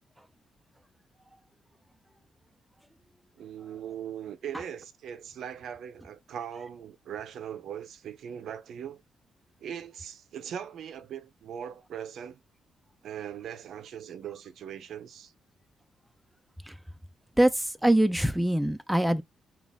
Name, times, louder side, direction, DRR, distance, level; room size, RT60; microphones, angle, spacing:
voice 1, 3.4-9.0 9.6-12.4 13.0-15.3, right 9 dB, 75° right, 0.5 m, -40 dB
voice 2, 17.4-19.2, right 1 dB, 5° right, 0.4 m, -23 dB
4.0 x 2.4 x 3.4 m
cardioid pair, 85°, 0 cm